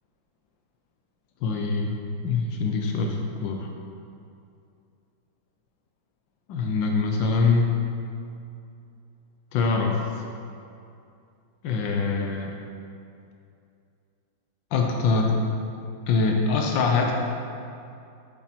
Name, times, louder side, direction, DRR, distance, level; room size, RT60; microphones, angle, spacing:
voice 1, 1.4-3.7 6.5-7.8 9.5-10.2 11.6-12.5 14.7-15.4 16.1-17.1, left 4 dB, 90° left, 1 dB, 1.5 m, -24 dB
7.9 x 7.4 x 4.4 m, 2.5 s
omnidirectional pair, 2.0 m